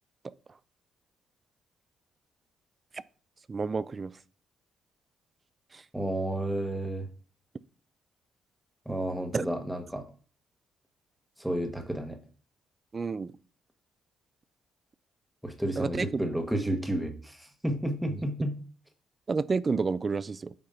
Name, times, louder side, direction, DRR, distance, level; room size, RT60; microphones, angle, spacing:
voice 1, 3.5-4.1 5.7-5.8 9.3-9.4 12.9-13.3 15.8-16.2 19.3-20.5, right 4 dB, 35° right, 0.4 m, -30 dB
voice 2, 5.9-7.1 8.8-10.1 11.4-12.2 15.4-18.6, right 1 dB, 5° right, 1.4 m, -31 dB
8.7 x 2.9 x 5.5 m
cardioid pair, 90°, 0 cm